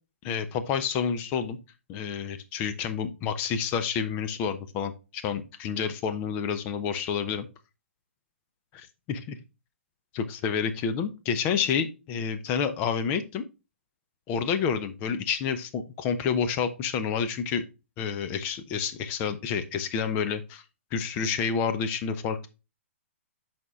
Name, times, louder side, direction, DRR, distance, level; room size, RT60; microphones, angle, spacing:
voice 1, 0.2-1.6 1.9-7.5 8.7-9.4 10.1-13.5 14.3-17.6 18.0-20.6 20.9-22.5, left 6 dB, 25° left, 9 dB, 0.7 m, -29 dB
12.0 x 4.4 x 2.4 m, 0.28 s
figure-of-eight pair, 120°, 7 cm